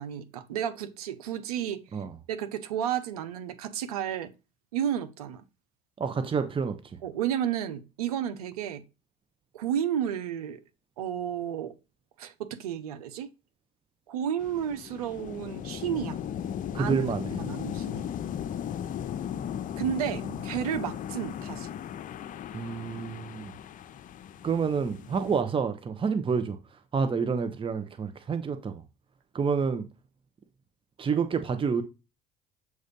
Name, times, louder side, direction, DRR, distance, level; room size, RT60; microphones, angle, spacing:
voice 1, 0.0-4.3 4.7-5.4 7.0-8.8 9.5-10.6 11.0-11.7 12.2-13.3 14.1-16.2 16.8-17.0 17.4-18.1 19.8-21.7, right 9 dB, 85° right, 0.8 m, -32 dB
voice 2, 6.0-6.8 16.7-17.3 22.5-23.5 24.4-26.6 26.9-28.8 29.3-29.8 31.0-31.8, right 5 dB, 30° right, 0.9 m, -28 dB
sound 1, 14.4-25.4, left 9 dB, 45° left, 0.7 m, -37 dB
7.9 x 2.7 x 5.3 m
hypercardioid pair, 75°, 19 cm